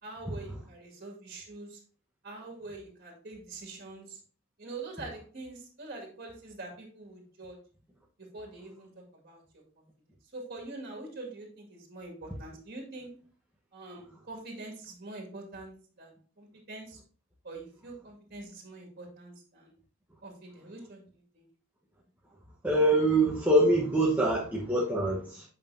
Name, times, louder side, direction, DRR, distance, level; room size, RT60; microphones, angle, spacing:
voice 1, 0.0-1.8 2.2-4.2 4.6-7.6 8.2-8.9 9.2-9.4 10.3-13.1 13.7-17.0 17.4-19.7 20.2-21.5, right 2 dB, 50° right, 0 dB, 2.1 m, -44 dB
voice 2, 22.6-25.4, right 1 dB, 10° right, -3 dB, 1.1 m, -24 dB
8.2 x 5.4 x 2.7 m, 0.42 s
head